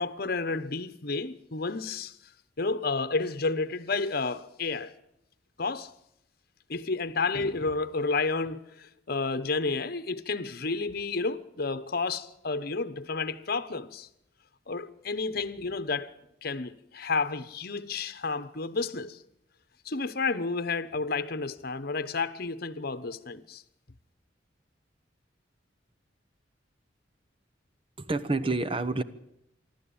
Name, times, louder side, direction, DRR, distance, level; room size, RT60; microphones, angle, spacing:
voice 1, 0.0-2.1 2.6-4.9 5.6-5.9 6.7-14.1 14.7-16.1 16.4-19.2 19.8-23.6, left 3 dB, 55° left, 1.1 m, -31 dB
voice 2, 28.0-29.0, right 3 dB, 30° right, 1.1 m, -28 dB
25.5 x 12.5 x 8.7 m
head